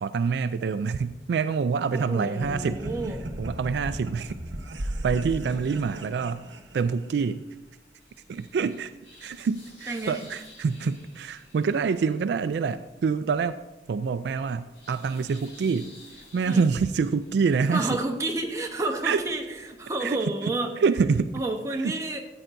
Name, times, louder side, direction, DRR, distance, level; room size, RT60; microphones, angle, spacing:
voice 1, 0.0-4.4 4.8-6.5 6.7-7.4 8.3-8.9 9.2-13.6 13.9-15.9 16.3-18.0 19.0-19.2 20.0-20.2 20.8-21.3 21.8-21.9, right 5 dB, 65° right, 12 dB, 0.3 m, -26 dB
voice 2, 1.9-3.2 9.9-10.2 16.4-16.7 17.7-20.8 21.3-22.2, right 2 dB, 15° right, 2 dB, 0.9 m, -30 dB
sound 1, 2.4-7.2, right 1 dB, 90° right, 0.9 m, -36 dB
sound 2, 5.5-20.0, left 1 dB, 75° left, 3.7 m, -54 dB
13.5 x 8.7 x 2.6 m, 1.0 s
head